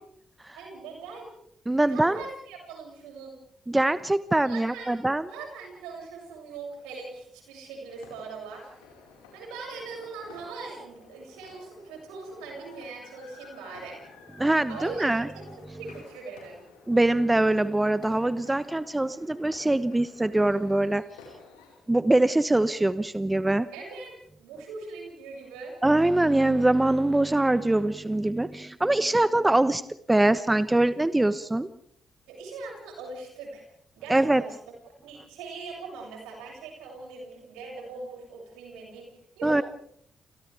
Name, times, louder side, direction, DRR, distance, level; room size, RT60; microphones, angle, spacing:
voice 1, 0.5-1.3 1.8-3.4 4.4-4.9 5.3-8.6 9.3-14.0 14.7-16.6 23.7-24.1 24.4-25.7 32.3-33.7 34.0-34.5 35.0-39.6, right 4 dB, 85° right, -1 dB, 7.3 m, -41 dB
voice 2, 1.7-2.2 3.7-5.3 14.4-15.3 16.9-21.0 21.9-23.7 25.8-29.8 30.1-31.7 34.1-34.4 39.4-39.6, right 2 dB, 15° right, 13 dB, 1.1 m, -23 dB
sound 1, 7.9-21.8, left 4 dB, 90° left, 4.9 m, -52 dB
29.5 x 28.5 x 3.5 m, 0.68 s
hypercardioid pair, 45°, 0 cm